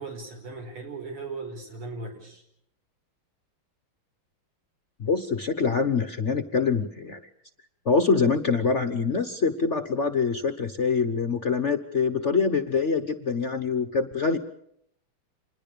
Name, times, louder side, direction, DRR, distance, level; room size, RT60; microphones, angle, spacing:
voice 1, 0.0-2.4, right 3 dB, 75° right, 4 dB, 5.8 m, -37 dB
voice 2, 5.0-7.2 7.8-14.4, left 5 dB, 40° left, 8 dB, 1.1 m, -25 dB
27.0 x 21.0 x 6.9 m, 0.72 s
omnidirectional pair, 2.4 m